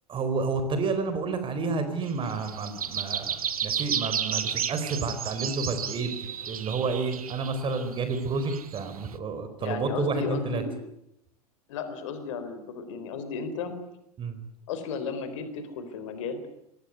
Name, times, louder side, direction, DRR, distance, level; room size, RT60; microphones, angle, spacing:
voice 1, 0.1-6.1 6.5-10.6 14.2-14.4, right 4 dB, 25° right, 9 dB, 4.5 m, -30 dB
sound 1, 2.1-9.1, right 8 dB, 70° right, 1.4 m, -33 dB
voice 2, 9.6-10.8 11.7-13.7 14.7-16.4, left 5 dB, 55° left, 9 dB, 4.2 m, -34 dB
25.0 x 18.5 x 9.7 m, 0.81 s
figure-of-eight pair, 85°, 19 cm